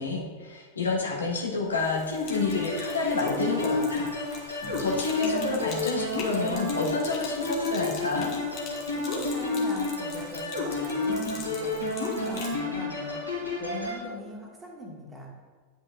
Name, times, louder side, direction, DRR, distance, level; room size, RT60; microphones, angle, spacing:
voice 1, 0.0-4.1 4.4-8.3, left 3 dB, 75° left, -2 dB, 1.5 m, -29 dB
Sink (filling or washing), 1.7-12.6, left 4 dB, 40° left, 1.6 m, -44 dB
sound 1, 2.3-14.0, left 3 dB, 90° left, 2.2 m, -30 dB
voice 2, 9.0-15.3, left 1 dB, 10° right, -2 dB, 1.6 m, -41 dB
10.5 x 5.6 x 2.5 m, 1.5 s
figure-of-eight pair, 90°, 0 cm